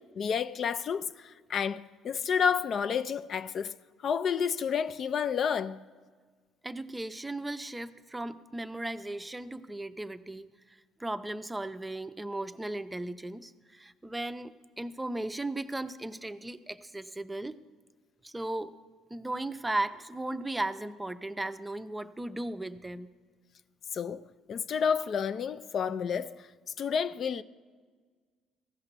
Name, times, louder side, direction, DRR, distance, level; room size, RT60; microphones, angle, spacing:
voice 1, 0.0-3.7 4.0-5.8 23.9-26.5 26.8-27.4, left 7 dB, 55° left, 0.3 m, -30 dB
voice 2, 6.6-10.5 11.0-17.6 18.2-18.7 19.1-23.1, right 2 dB, 15° right, 0.5 m, -36 dB
15.0 x 5.8 x 6.7 m
supercardioid pair, 70°, 0 cm